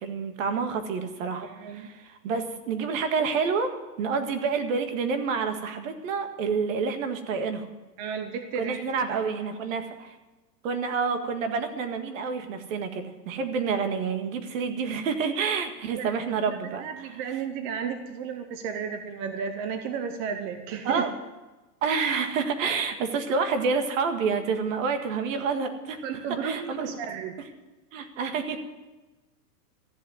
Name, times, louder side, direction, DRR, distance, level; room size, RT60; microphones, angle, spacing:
voice 1, 0.0-3.7 4.0-7.7 8.6-10.2 10.6-17.2 20.8-21.1 21.8-26.0 26.4-26.9 27.9-28.6, right 5 dB, 55° right, 7 dB, 1.8 m, -28 dB
voice 2, 1.4-1.9 8.0-9.2 15.9-16.1 16.5-21.1 26.0-27.3, right 6 dB, 20° right, 7 dB, 0.6 m, -33 dB
14.0 x 8.3 x 9.3 m, 1.2 s
supercardioid pair, 160°, 47 cm